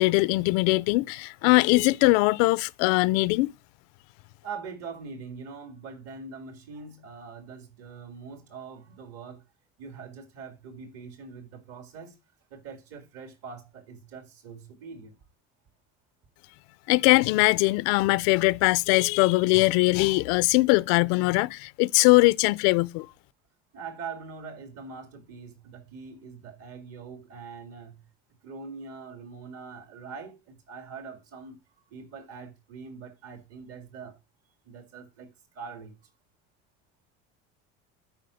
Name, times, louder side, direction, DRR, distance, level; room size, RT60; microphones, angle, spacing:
voice 1, 0.0-3.5 16.9-23.1, left 23 dB, 85° left, 0.5 m, -21 dB
voice 2, 4.4-9.4 9.8-12.2 12.5-15.2 23.7-28.1 28.4-31.6 31.9-34.2 34.7-36.0, right 5 dB, 55° right, 2.0 m, -43 dB
11.5 x 4.8 x 5.0 m
cardioid pair, 165°, 30 cm